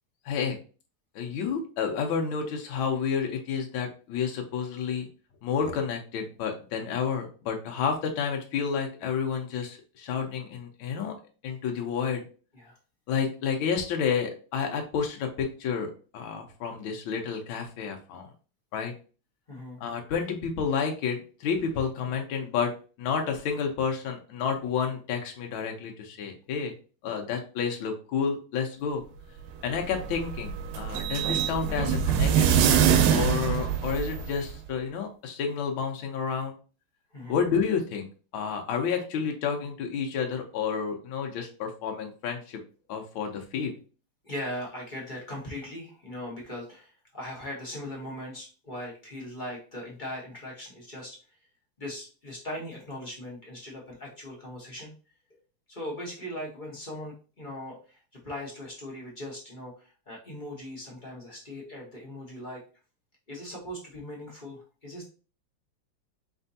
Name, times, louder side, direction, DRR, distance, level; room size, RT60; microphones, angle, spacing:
voice 1, 0.2-0.6 1.1-5.1 5.4-11.1 11.4-12.2 13.1-15.9 16.1-18.3 18.7-18.9 19.8-22.7 23.0-26.7 27.0-29.0 29.6-32.7 33.1-36.5 37.3-38.1 38.3-42.6 42.9-43.7, left 6 dB, 75° left, 2 dB, 1.5 m, -30 dB
voice 2, 19.5-19.8 37.1-37.4 44.2-51.2 51.8-54.9 55.7-58.0 58.2-62.6 63.3-65.1, left 1 dB, 30° left, -3 dB, 0.9 m, -39 dB
sound 1, 29.5-34.5, right 8 dB, 85° right, 1.5 m, -24 dB
4.7 x 3.4 x 2.7 m, 0.36 s
omnidirectional pair, 2.4 m